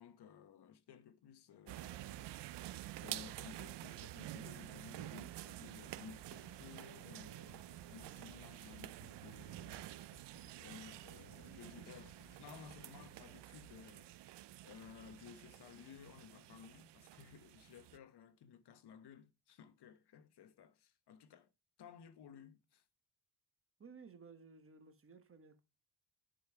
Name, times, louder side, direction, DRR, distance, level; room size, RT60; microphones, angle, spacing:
voice 1, 0.0-2.7 3.0-9.9 10.6-14.1 14.6-21.5 21.8-22.8, left 8 dB, 70° left, 1.1 m, -57 dB
sound 1, 1.7-18.0, right 15 dB, 80° right, 0.6 m, -50 dB
sound 2, 5.8-13.2, left 8 dB, 50° left, 0.7 m, -66 dB
voice 2, 23.8-25.6, right 5 dB, 30° right, 1.1 m, -57 dB
10.5 x 5.3 x 4.6 m
wide cardioid pair, 155°, 41 cm